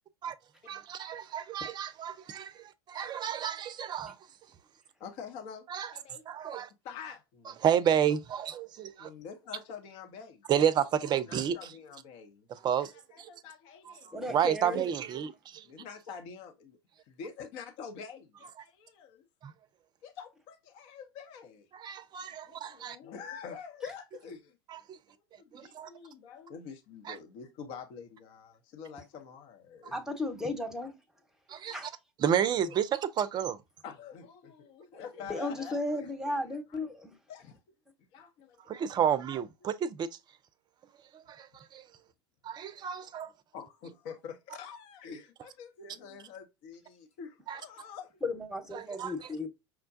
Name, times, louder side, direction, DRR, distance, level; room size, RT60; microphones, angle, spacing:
voice 1, 0.7-4.2 5.7-5.9 6.3-6.7 7.6-9.1 10.5-11.7 12.5-12.9 13.2-13.3 13.9-15.7 19.4-19.5 21.7-23.0 24.7-25.0 25.5-25.9 27.1-27.2 31.5-31.9 32.2-33.6 38.7-40.1 41.1-41.9 42.4-43.3 47.5-47.6 48.7-49.3, right 9 dB, 30° right, 0.5 m, -31 dB
voice 2, 5.0-5.7 5.9-6.2 6.8-7.6 9.0-10.5 11.3-12.5 12.8-14.1 15.6-16.8 17.1-19.2 20.0-21.7 22.5-24.6 25.1-30.0 32.6-32.7 33.8-36.8 37.3-37.6 38.1-38.6 43.0-43.1 43.5-48.2 48.9-49.0, left 6 dB, 50° left, 0.8 m, -46 dB
voice 3, 14.1-14.8 29.9-30.9 31.7-31.9 35.2-37.1 48.2-49.5, left 2 dB, 5° right, 1.0 m, -35 dB
5.8 x 2.2 x 2.6 m
figure-of-eight pair, 85°, 14 cm